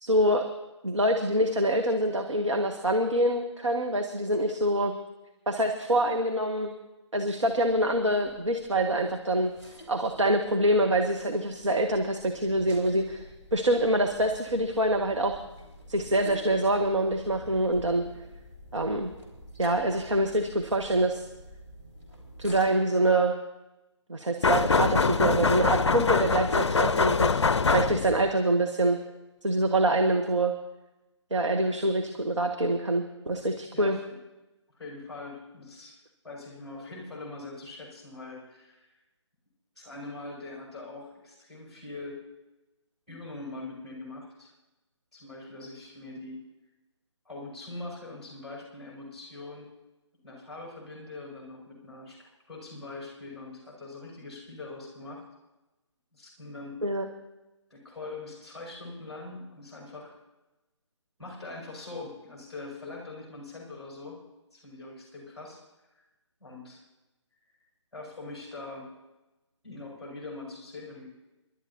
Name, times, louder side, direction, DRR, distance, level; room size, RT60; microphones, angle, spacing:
voice 1, 0.0-0.4 0.8-4.9 5.5-6.7 7.1-9.5 9.9-13.3 13.5-15.4 15.9-18.0 18.7-19.1 19.6-21.2 22.4-23.3 24.1-29.0 29.4-30.5 31.3-34.0 56.8-57.1, right 1 dB, 75° right, 3 dB, 1.3 m, -25 dB
sound 1, 7.4-22.7, equal, 20° right, 4.0 m, -49 dB
sound 2, 24.4-28.3, left 4 dB, 65° left, 0.5 m, -24 dB
voice 2, 34.8-36.0 36.2-38.9 39.8-42.2 43.1-44.5 45.1-46.4 47.3-49.7 50.2-52.2 52.5-55.2 56.1-56.8 57.7-60.2 61.2-64.2 64.5-65.6 66.4-66.8 67.9-68.9 69.6-71.1, left 2 dB, ahead, -4 dB, 5.3 m, -42 dB
28.0 x 12.0 x 2.8 m, 1.0 s
figure-of-eight pair, 145°, 16 cm